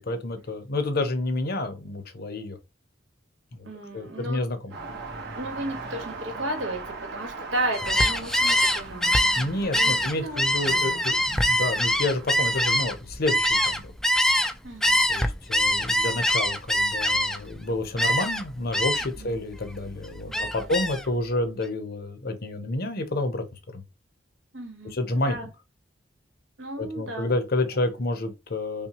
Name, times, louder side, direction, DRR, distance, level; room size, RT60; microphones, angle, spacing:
voice 1, 0.0-2.6 3.5-3.7 3.9-4.7 9.4-13.9 15.1-23.4 23.7-23.8 24.8-25.4 26.8-28.9, left 2 dB, 55° left, 0.8 m, -29 dB
voice 2, 3.6-4.4 5.3-9.1 9.5-11.2 14.6-15.0 19.2-19.4 20.3-20.9 24.5-25.5 26.6-27.4 27.7-27.8, right 1 dB, 80° right, 1.6 m, -34 dB
sound 1, 4.7-12.9, right 4 dB, 60° right, 1.3 m, -40 dB
Gull seagull, 7.7-14.5 14.8-17.5 18.0-18.4 18.7-19.2 19.6-21.1, equal, 5° left, 0.3 m, -24 dB
5.5 x 2.2 x 2.9 m
head